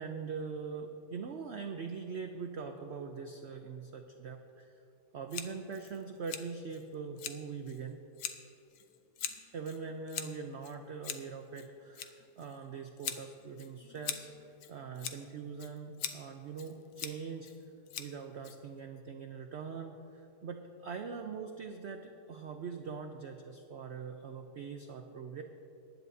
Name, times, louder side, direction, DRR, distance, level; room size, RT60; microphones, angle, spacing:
voice 1, 0.0-4.8 5.1-8.0 9.4-17.5 18.0-25.4, right 5 dB, 65° right, 5 dB, 0.6 m, -42 dB
Scissors, 5.3-19.0, left 8 dB, 75° left, 1.3 m, -44 dB
22.5 x 10.5 x 2.7 m, 2.8 s
omnidirectional pair, 1.8 m